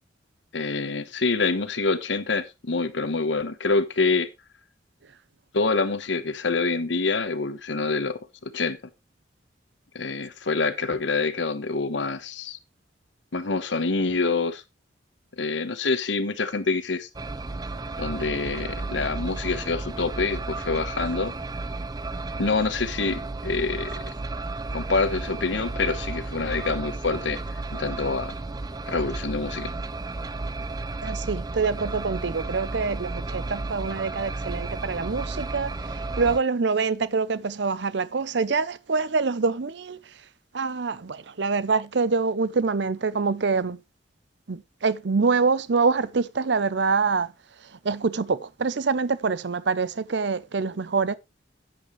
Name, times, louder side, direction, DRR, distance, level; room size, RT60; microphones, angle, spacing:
voice 1, 0.5-4.3 5.5-8.8 9.9-12.6 13.3-14.6 15.4-17.1 18.0-21.3 22.4-23.9 24.7-28.4 28.9-29.7, left 3 dB, 70° left, 1.1 m, -26 dB
sound 1, 17.1-36.4, right 2 dB, 20° right, 0.5 m, -33 dB
voice 2, 31.0-35.7 36.2-40.0 40.5-43.8 44.5-47.3 47.8-51.2, right 4 dB, 65° right, 0.6 m, -25 dB
11.0 x 8.8 x 3.1 m
head